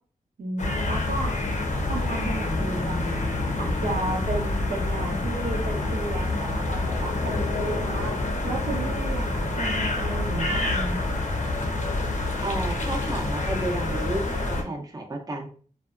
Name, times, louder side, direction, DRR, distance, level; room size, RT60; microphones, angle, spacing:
voice 1, 0.4-1.4 1.9-3.3 3.6-11.1, right 2 dB, 80° right, -1 dB, 0.7 m, -33 dB
sound 1, 0.6-14.6, left 2 dB, 55° left, 0.6 m, -27 dB
voice 2, 12.4-15.5, right 2 dB, 25° right, 2 dB, 0.6 m, -32 dB
2.6 x 2.2 x 2.3 m, 0.42 s
cardioid pair, 55°, 15 cm